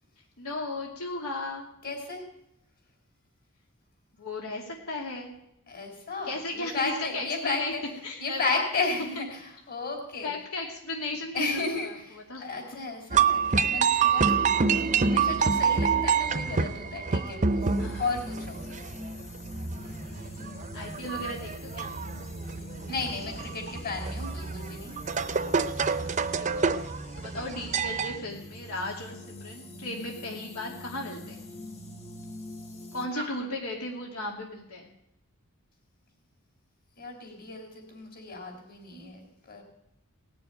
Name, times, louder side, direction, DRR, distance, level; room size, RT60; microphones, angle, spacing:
voice 1, 0.4-1.7 4.2-5.3 6.2-7.7 8.0-9.1 10.2-11.9 12.3-12.4 17.8-18.0 18.7-18.8 19.8-21.9 25.8-26.0 26.4-31.5 32.9-34.9, left 2 dB, 85° left, -1 dB, 2.7 m, -36 dB
voice 2, 1.8-2.2 5.7-7.8 8.2-10.3 11.3-17.7 18.0-18.6 22.9-24.9 33.1-33.3 37.0-39.6, left 3 dB, 45° left, 3 dB, 4.3 m, -34 dB
sound 1, 13.1-28.2, right 6 dB, 35° right, 0.6 m, -27 dB
sound 2, 17.6-33.1, equal, 30° left, 1.6 m, -43 dB
18.5 x 7.0 x 9.0 m, 0.81 s
head